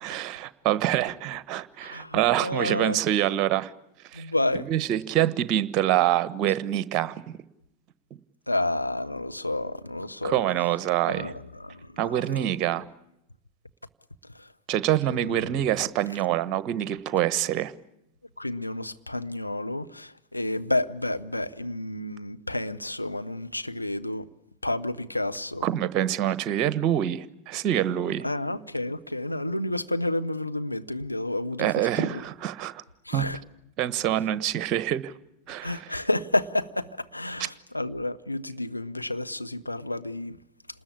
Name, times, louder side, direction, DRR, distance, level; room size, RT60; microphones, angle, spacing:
voice 1, 0.0-3.7 4.1-4.3 4.5-7.4 10.2-11.3 12.0-12.8 14.7-17.7 25.6-28.2 31.6-32.8 33.1-33.2 33.8-35.1 35.5-35.8 37.4-37.5, right 12 dB, 40° right, 1.2 m, -26 dB
voice 2, 1.8-3.0 4.1-4.7 8.5-10.4 11.1-12.1 14.4-14.5 15.1-15.5 18.4-24.3 24.6-25.7 28.2-32.2 33.1-33.4 35.6-40.4, left 1 dB, 85° left, 0.9 m, -30 dB
28.5 x 20.0 x 8.5 m
figure-of-eight pair, 85°, 0 cm